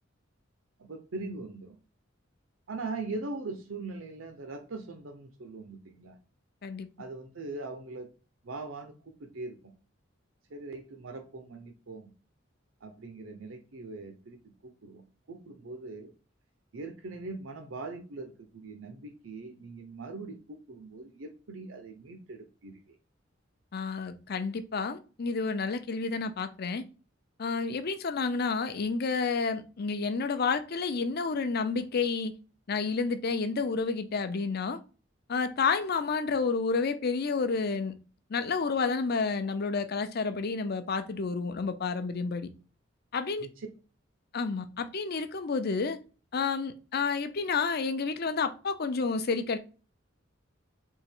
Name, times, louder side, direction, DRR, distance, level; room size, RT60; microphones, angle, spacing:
voice 1, 0.8-1.8 2.7-6.2 7.0-8.1 8.4-9.7 10.5-12.1 12.8-14.4 14.8-16.1 16.7-23.0 43.4-43.7, right 3 dB, 85° right, 0.7 m, -41 dB
voice 2, 23.7-26.8 27.4-32.3 32.7-34.8 35.3-37.9 38.3-42.5 43.1-43.5 44.3-46.0 46.3-49.6, left 4 dB, 55° left, 0.6 m, -30 dB
3.6 x 2.9 x 4.5 m
head